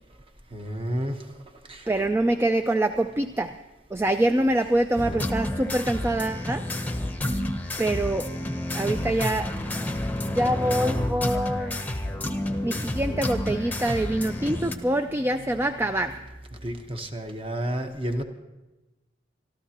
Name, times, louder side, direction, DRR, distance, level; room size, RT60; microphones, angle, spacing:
voice 1, 0.5-1.4 1.7-1.9 16.5-18.2, equal, 30° right, 5 dB, 1.1 m, -31 dB
voice 2, 1.9-3.6 3.9-6.7 7.8-8.3 8.7-9.5 10.2-11.9 12.6-16.2, right 1 dB, 15° right, 9 dB, 0.3 m, -25 dB
sound 1, 5.0-14.7, left 1 dB, 10° left, 0.8 m, -29 dB
sound 2, 13.3-16.3, equal, 90° right, 4.4 m, -44 dB
25.5 x 13.0 x 2.9 m, 1.1 s
head